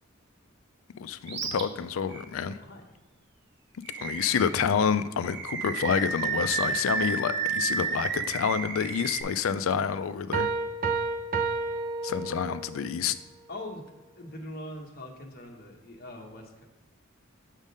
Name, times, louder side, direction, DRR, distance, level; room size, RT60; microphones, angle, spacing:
voice 1, 1.0-2.6 3.9-10.5 12.0-13.1, left 7 dB, 80° left, 13 dB, 0.4 m, -28 dB
Animal, 1.3-1.6 2.1-2.2 3.8-4.6 5.2-9.2, right 5 dB, 60° right, 0.8 m, -31 dB
sound 1, 10.3-12.8, right 4 dB, 40° right, 0.4 m, -30 dB
voice 2, 13.5-13.8 14.2-16.7, left 1 dB, 50° left, 1 dB, 1.0 m, -42 dB
7.3 x 3.6 x 5.4 m, 1.2 s
head